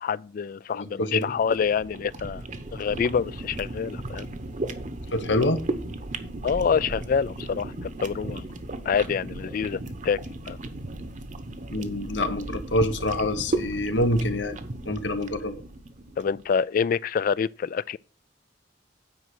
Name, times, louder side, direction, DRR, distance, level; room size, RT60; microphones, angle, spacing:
voice 1, 0.0-2.4 2.7-4.3 6.4-8.5 8.8-10.2 10.5-10.6 16.2-18.0, left 6 dB, 50° left, 0.3 m, -26 dB
voice 2, 0.7-1.3 5.1-5.6 11.7-14.6 14.9-15.6, left 1 dB, 85° left, 1.1 m, -26 dB
sound 1, 1.2-16.4, right 2 dB, 45° right, 0.9 m, -35 dB
9.3 x 5.1 x 6.2 m
head